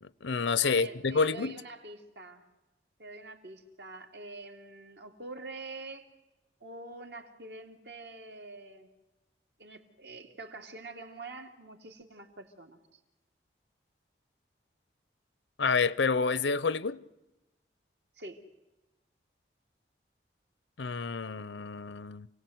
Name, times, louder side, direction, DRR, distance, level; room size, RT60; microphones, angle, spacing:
voice 1, 0.0-1.6 15.6-17.0 20.8-22.3, left 5 dB, 85° left, 0.7 m, -29 dB
voice 2, 0.6-2.4 3.0-6.1 6.6-8.9 9.6-12.8 18.2-18.4, right 2 dB, 70° right, 2.7 m, -46 dB
28.0 x 18.0 x 8.0 m
head